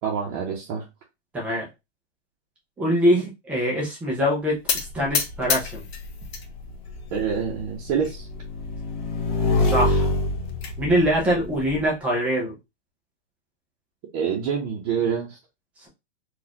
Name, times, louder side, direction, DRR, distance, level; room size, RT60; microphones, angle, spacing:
voice 1, 0.0-0.8 7.1-8.3 14.1-15.4, right 7 dB, 30° right, -2 dB, 0.8 m, -26 dB
voice 2, 1.3-1.7 2.8-5.9 9.6-10.1 10.8-12.6, equal, 5° right, -3 dB, 0.4 m, -23 dB
sound 1, 4.7-6.5 6.8-7.5 8.0-8.1 8.4-8.5 8.9-9.0 10.1-10.7, left 6 dB, 60° left, 1.0 m, -29 dB
Motorcycle / Engine, 4.7-11.8, left 2 dB, 35° left, 0.9 m, -27 dB
4.1 x 2.4 x 2.8 m, 0.24 s
hypercardioid pair, 155°, 35 cm